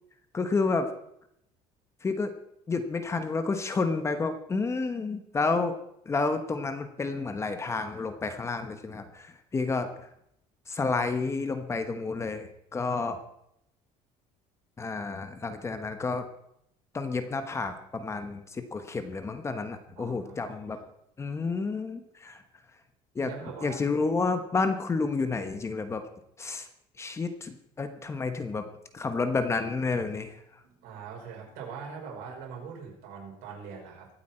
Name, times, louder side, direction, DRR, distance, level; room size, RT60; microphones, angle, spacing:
voice 1, 0.3-0.9 2.0-2.3 2.7-5.8 6.0-9.9 10.7-13.2 14.8-16.3 16.9-20.8 21.2-22.4 23.1-23.3 23.6-26.0 26.4-26.7 27.0-28.7 28.9-30.4, left 4 dB, 20° left, 8 dB, 1.1 m, -30 dB
voice 2, 20.0-20.9 23.2-23.9 28.9-29.1 30.6-34.1, right 6 dB, 85° right, -1 dB, 5.4 m, -42 dB
23.0 x 8.5 x 4.4 m, 0.75 s
cardioid pair, 150°, 15 cm